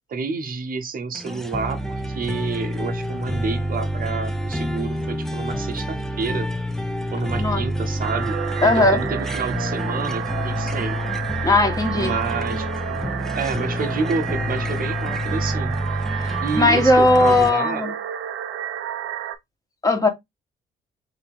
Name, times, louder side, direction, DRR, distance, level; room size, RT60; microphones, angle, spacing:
voice 1, 0.1-6.5 7.1-8.4 8.6-11.0 11.9-13.1 13.3-16.0 16.4-17.8, right 4 dB, 45° right, 0.9 m, -29 dB
sound 1, 1.1-17.5, equal, ahead, 0.6 m, -28 dB
sound 2, 8.0-19.4, right 10 dB, 65° right, 0.7 m, -31 dB
voice 2, 8.6-9.0 11.4-12.1 16.1-17.9 19.8-20.1, left 2 dB, 15° left, 1.5 m, -18 dB
3.6 x 2.9 x 3.5 m
hypercardioid pair, 50°, 21 cm